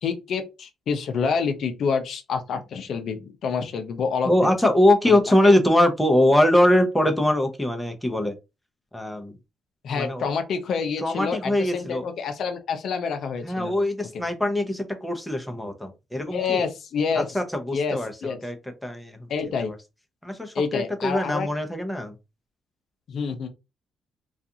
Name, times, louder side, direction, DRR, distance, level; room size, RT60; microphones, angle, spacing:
voice 1, 0.0-4.5 5.1-5.5 9.8-13.7 16.2-17.4 17.7-18.4 19.3-19.7 20.5-21.5 23.1-23.5, left 5 dB, 65° left, 0.5 m, -28 dB
voice 2, 4.2-8.3 8.9-9.3 9.9-10.3 11.0-12.0 13.4-16.6 17.2-18.5 18.8-19.3 19.6-19.8 20.2-22.1, left 1 dB, 5° left, 0.6 m, -22 dB
2.4 x 2.3 x 2.7 m
cardioid pair, 90°, 0 cm